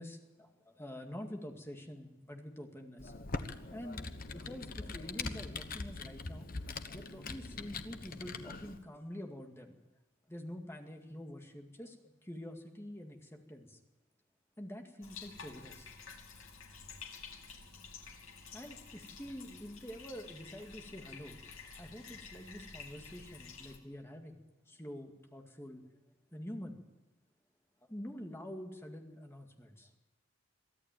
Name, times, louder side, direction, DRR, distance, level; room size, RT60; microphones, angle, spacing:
voice 1, 0.0-3.1 3.7-6.5 6.9-9.8 10.3-13.8 14.6-15.9 18.5-21.4 21.8-24.3 24.7-25.8 26.3-26.8 27.9-29.9, equal, 10° left, 3 dB, 2.1 m, -47 dB
Computer keyboard, 3.0-8.8, left 3 dB, 40° left, 1.1 m, -42 dB
Bathtub (filling or washing), 15.0-23.8, left 5 dB, 75° left, 2.9 m, -51 dB
23.5 x 14.0 x 9.1 m, 0.99 s
head